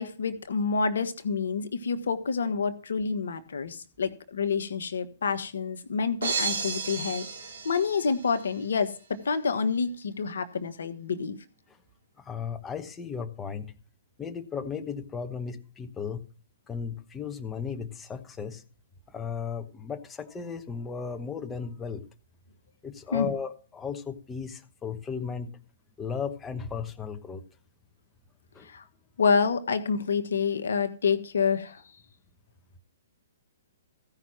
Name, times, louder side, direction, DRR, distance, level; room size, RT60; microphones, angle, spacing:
voice 1, 0.0-7.3 7.6-8.9 9.2-11.4 23.1-23.3 28.6-28.8 29.2-31.8, left 5 dB, 70° left, 1.2 m, -28 dB
sound 1, 6.2-8.5, right 5 dB, 70° right, 2.6 m, -33 dB
voice 2, 12.2-13.7 14.2-16.2 16.7-18.6 19.1-22.1 22.8-25.5 26.0-27.4 28.5-28.7, left 6 dB, 15° left, 1.0 m, -35 dB
15.0 x 5.8 x 6.1 m
figure-of-eight pair, 125°, 0 cm